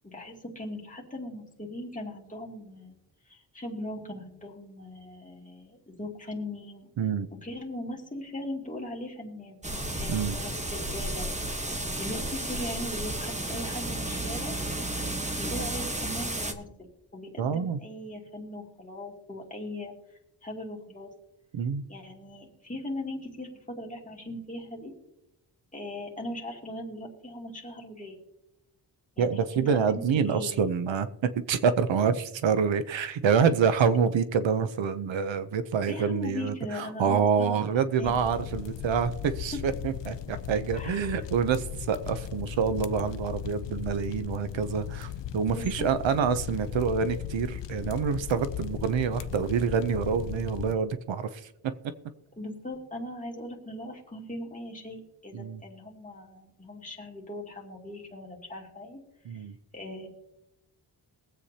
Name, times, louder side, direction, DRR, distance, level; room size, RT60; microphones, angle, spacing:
voice 1, 0.0-2.9 3.3-6.9 7.4-9.6 10.0-11.3 11.5-11.7 12.0-14.5 15.3-19.9 20.4-21.1 21.9-24.9 25.7-28.2 29.2-30.6 35.9-38.3 39.5-39.6 40.7-41.1 45.5-45.9 52.4-59.0 59.3-59.4 59.7-60.1, left 1 dB, 15° left, -1 dB, 2.5 m, -39 dB
sound 1, 9.6-16.5, right 1 dB, 15° right, 1.1 m, -32 dB
voice 2, 17.4-17.8 21.5-21.8 29.2-31.1 31.5-51.5 55.3-55.6 59.3-59.5, right 6 dB, 85° right, 12 dB, 0.7 m, -27 dB
sound 2, 38.0-50.7, left 10 dB, 75° left, 0.6 m, -37 dB
22.5 x 8.3 x 2.8 m, 0.88 s
wide cardioid pair, 110°, 44 cm